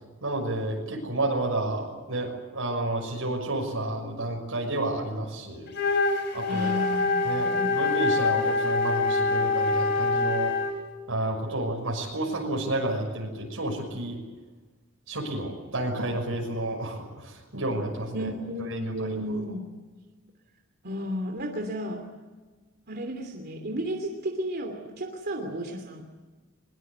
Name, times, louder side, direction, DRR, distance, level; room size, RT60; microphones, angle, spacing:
voice 1, 0.2-5.7 6.3-6.7 7.2-10.5 11.1-14.2 15.1-18.3 18.8-19.3, right 1 dB, 75° right, 0 dB, 6.1 m, -30 dB
Wind instrument woodwind instrument, 5.7-10.9, left 3 dB, 55° left, 3.6 m, -25 dB
voice 2, 6.4-7.8 18.1-19.6 20.8-22.0 22.9-26.1, equal, 50° right, 3 dB, 2.9 m, -33 dB
22.5 x 22.0 x 8.1 m, 1.3 s
head